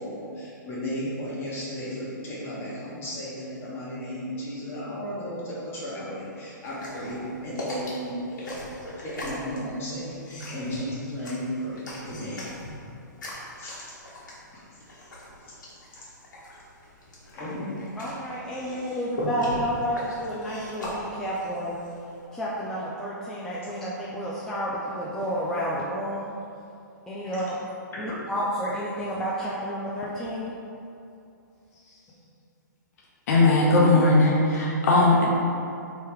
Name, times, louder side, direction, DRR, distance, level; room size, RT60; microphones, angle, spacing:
voice 1, 0.0-8.6 9.0-12.5 13.6-13.9 14.7-14.8 15.4-15.6 17.3-17.8 27.3-27.4, equal, 20° left, -8 dB, 1.1 m, -34 dB
sound 1, 6.6-22.2, left 1 dB, 70° left, 1.2 m, -39 dB
voice 2, 18.0-21.8 22.3-26.3 27.1-27.5 28.0-30.6, equal, 5° left, -8 dB, 0.3 m, -30 dB
voice 3, 33.3-35.3, left 2 dB, 50° left, -4 dB, 0.7 m, -19 dB
3.2 x 2.9 x 3.3 m, 2.5 s
hypercardioid pair, 125°, 10 cm